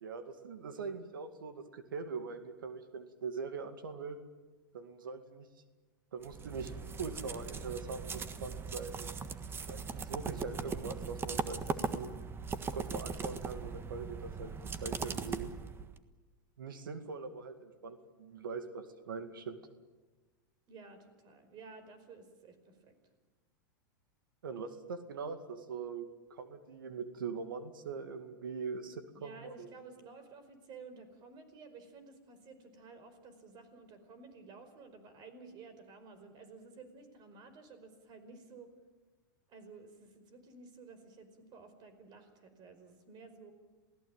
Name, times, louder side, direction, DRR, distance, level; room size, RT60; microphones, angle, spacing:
voice 1, 0.0-4.2 4.7-5.5 6.1-6.7 7.0-9.1 9.7-12.1 12.7-14.5 14.8-15.5 16.6-19.6 24.4-29.7, right 5 dB, 85° right, 8 dB, 2.2 m, -42 dB
sound 1, 6.2-16.0, right 5 dB, 20° right, 1.5 m, -39 dB
voice 2, 20.7-22.9 29.1-38.7 39.5-43.5, right 4 dB, 40° right, 10 dB, 5.1 m, -53 dB
27.5 x 17.5 x 9.0 m, 1.3 s
hypercardioid pair, 110°, 11 cm